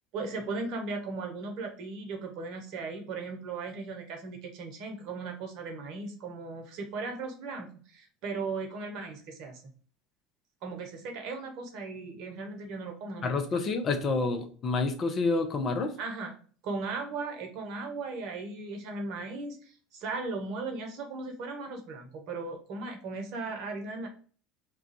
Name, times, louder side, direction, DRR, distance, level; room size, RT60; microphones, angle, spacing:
voice 1, 0.1-9.7 10.6-13.4 16.0-16.4 16.6-24.1, right 3 dB, 60° right, 3 dB, 0.8 m, -37 dB
voice 2, 13.2-15.9, left 3 dB, 40° left, 6 dB, 0.6 m, -28 dB
2.4 x 2.3 x 3.9 m, 0.42 s
hypercardioid pair, 75°, 0 cm